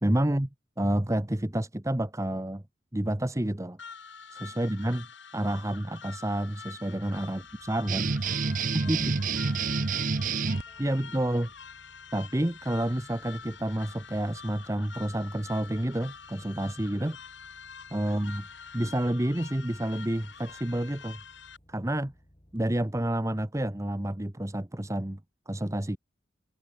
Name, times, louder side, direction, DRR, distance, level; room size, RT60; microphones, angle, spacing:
voice 1, 0.0-0.5 0.8-2.6 2.9-3.8 4.3-5.1 5.3-8.1 8.7-9.1 10.8-11.5 12.1-17.2 17.9-18.4 18.7-21.2 21.7-22.1 22.5-25.2 25.5-26.0, right 1 dB, 15° right, 1.0 m, -29 dB
sound 1, 3.8-21.6, left 6 dB, 70° left, 6.4 m, -46 dB
voice 2, 4.4-4.8 7.2-7.4 8.5-11.1 16.9-17.2 17.9-18.2, left 1 dB, 10° left, 5.8 m, -61 dB
sound 2, 7.0-22.6, equal, 30° left, 7.2 m, -61 dB
sound 3, 7.9-10.6, right 4 dB, 45° right, 0.7 m, -28 dB
head